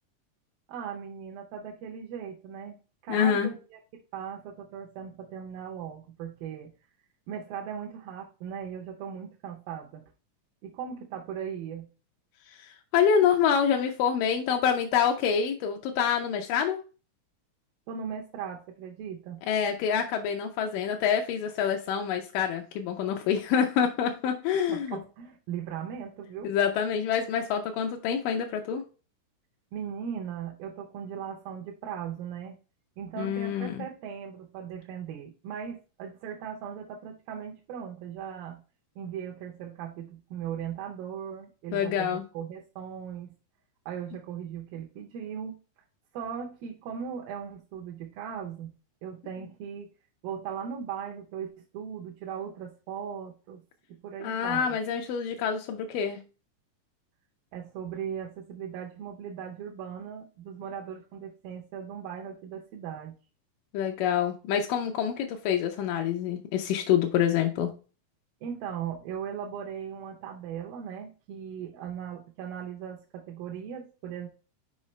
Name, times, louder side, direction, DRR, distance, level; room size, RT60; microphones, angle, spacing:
voice 1, 0.7-2.8 3.0-3.8 4.1-6.7 7.3-10.0 10.6-11.9 17.9-19.4 24.7-26.6 29.7-32.6 33.0-38.6 39.0-43.3 43.9-45.6 46.1-48.7 49.0-49.9 50.2-53.6 54.0-54.8 57.5-63.1 68.4-74.3, right 8 dB, 85° right, 0 dB, 2.6 m, -38 dB
voice 2, 3.1-3.5 12.5-16.8 19.5-25.0 26.4-28.8 33.2-33.9 41.7-42.2 54.2-56.2 63.7-67.7, left 8 dB, 80° left, 3 dB, 2.3 m, -26 dB
6.3 x 5.2 x 3.1 m, 0.34 s
omnidirectional pair, 4.0 m